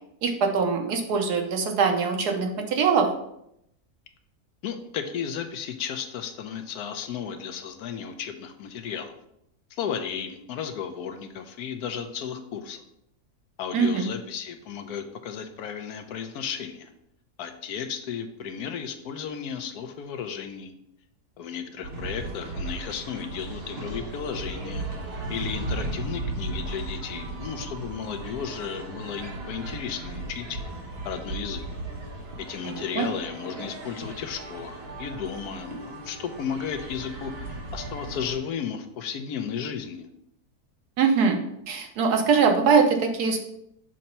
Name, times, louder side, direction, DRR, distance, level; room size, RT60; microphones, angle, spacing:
voice 1, 0.2-3.1 13.7-14.1 32.6-33.1 41.0-41.4 41.7-43.4, right 5 dB, 85° right, 4 dB, 1.4 m, -22 dB
voice 2, 4.6-9.2 9.7-12.8 13.6-16.9 17.4-20.7 21.4-24.9 25.3-30.6 31.0-31.6 32.4-40.1, left 7 dB, 75° left, 8 dB, 1.2 m, -34 dB
sound 1, 21.8-38.4, right 2 dB, 45° right, 1.2 m, -36 dB
6.3 x 2.9 x 5.4 m, 0.77 s
omnidirectional pair, 1.7 m